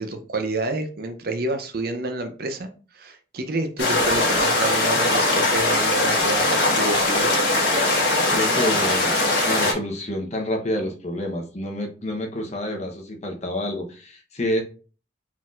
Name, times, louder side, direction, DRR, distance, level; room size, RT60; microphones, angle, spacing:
voice 1, 0.0-7.3, right 2 dB, 50° right, 7 dB, 0.6 m, -29 dB
sound 1, 3.8-9.7, left 2 dB, 65° left, 1.5 m, -20 dB
voice 2, 8.3-9.2 9.4-14.6, left 1 dB, 35° left, 2 dB, 0.9 m, -28 dB
4.3 x 3.9 x 2.4 m, 0.37 s
head